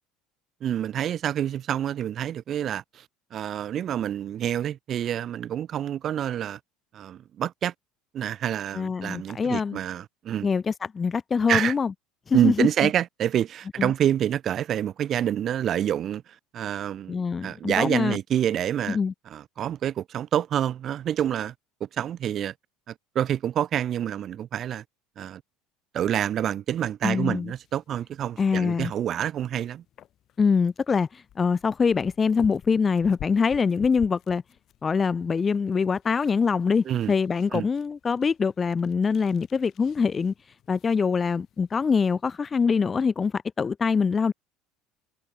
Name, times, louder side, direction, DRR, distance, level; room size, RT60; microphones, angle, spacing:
voice 1, 0.6-3.0 3.3-6.6 6.9-7.7 8.1-10.5 11.5-11.7 12.3-19.0 19.3-21.5 21.8-22.5 22.9-24.8 25.2-25.4 25.9-29.8 36.8-37.1 37.5-37.7, right 10 dB, 30° right, 1.0 m, -27 dB
voice 2, 8.8-9.8 10.4-11.9 12.3-12.7 13.8-13.9 17.1-18.2 18.9-19.1 27.0-27.5 28.4-28.9 30.4-34.4 34.8-40.3 40.7-44.3, left 5 dB, 15° left, 0.4 m, -24 dB
sound 1, 27.2-42.6, left 12 dB, 35° left, 5.9 m, -51 dB
cardioid pair, 175°, 0 cm